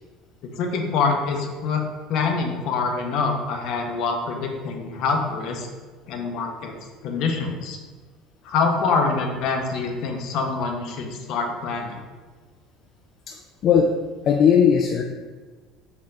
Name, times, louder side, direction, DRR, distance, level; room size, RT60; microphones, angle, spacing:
voice 1, 0.5-1.8 2.1-5.7 6.1-6.7 7.0-7.8 8.4-12.0, left 4 dB, 65° left, 3 dB, 0.7 m, -25 dB
voice 2, 13.3-13.9 14.3-15.0, left 7 dB, 50° left, 2 dB, 0.3 m, -18 dB
4.4 x 3.0 x 3.7 m, 1.4 s
supercardioid pair, 110°, 0 cm